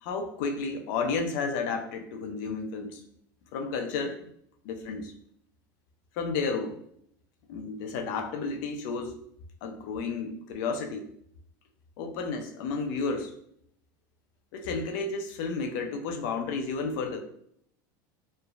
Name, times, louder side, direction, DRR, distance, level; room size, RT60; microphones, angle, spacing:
voice 1, 0.0-3.0 3.5-4.3 4.6-5.1 6.2-6.8 7.5-9.2 9.6-11.0 12.0-13.3 14.5-17.2, left 4 dB, 70° left, 5 dB, 0.5 m, -32 dB
3.1 x 2.0 x 2.4 m, 0.68 s
supercardioid pair, 100°, 11 cm